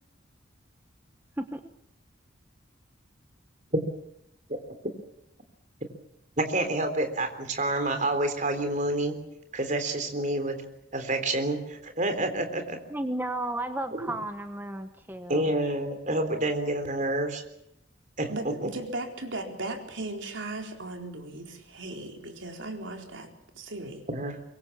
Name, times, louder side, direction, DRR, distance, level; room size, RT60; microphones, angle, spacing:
voice 1, 6.4-9.2 9.5-10.6 10.9-12.8 13.9-14.1 15.3-17.4 18.2-18.3 24.1-24.4, right 1 dB, 40° right, 7 dB, 3.7 m, -28 dB
voice 2, 12.9-15.4, right 1 dB, 10° right, 7 dB, 1.1 m, -33 dB
voice 3, 18.3-24.0, right 2 dB, 75° right, 3 dB, 4.3 m, -37 dB
24.5 x 22.5 x 7.3 m, 0.80 s
head